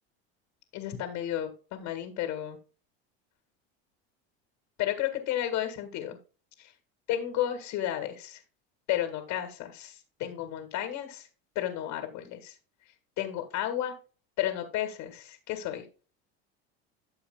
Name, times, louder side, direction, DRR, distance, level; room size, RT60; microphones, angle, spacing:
voice 1, 0.7-2.6 4.8-6.2 6.6-6.7 7.1-8.4 8.9-11.3 11.6-12.6 13.2-13.9 14.4-15.9, left 12 dB, 60° left, 6 dB, 1.8 m, -32 dB
13.0 x 6.9 x 2.2 m, 0.35 s
supercardioid pair, 90°, 33 cm